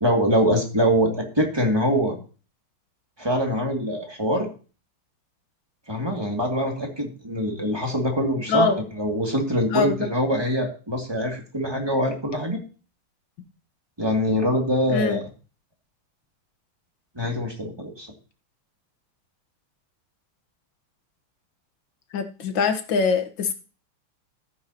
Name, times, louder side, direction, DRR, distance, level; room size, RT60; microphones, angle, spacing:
voice 1, 0.0-2.2 3.2-4.5 5.9-12.6 14.0-15.2 17.2-18.1, equal, 10° right, 1 dB, 2.1 m, -24 dB
voice 2, 9.7-10.1 14.9-15.2 22.1-23.5, left 5 dB, 65° left, 7 dB, 1.9 m, -23 dB
14.0 x 8.8 x 2.9 m, 0.35 s
omnidirectional pair, 2.4 m